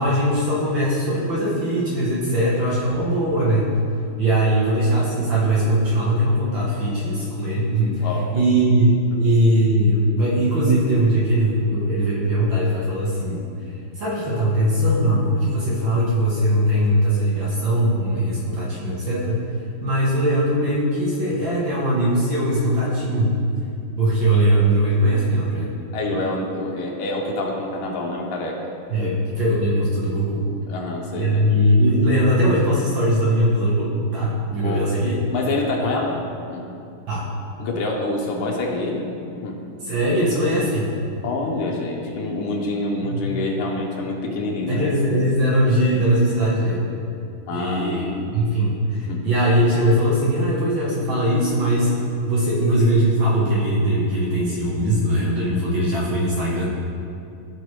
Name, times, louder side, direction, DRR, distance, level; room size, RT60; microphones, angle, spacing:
voice 1, 0.0-3.7 4.2-13.4 14.0-19.4 19.8-23.4 24.0-25.7 28.9-30.4 31.1-35.2 35.9-36.0 37.1-37.2 39.8-40.9 43.0-43.2 44.7-46.8 47.5-51.9 52.3-56.7, right 1 dB, 65° right, -7 dB, 2.1 m, -20 dB
voice 2, 8.0-8.5 25.9-28.6 29.0-29.1 30.7-31.5 34.6-34.9 35.3-36.2 36.5-36.7 37.6-39.1 39.4-39.6 41.2-45.0 47.5-48.4 49.1-49.2, left 2 dB, 90° left, 0 dB, 1.9 m, -26 dB
14.5 x 5.0 x 3.2 m, 2.6 s
omnidirectional pair, 2.4 m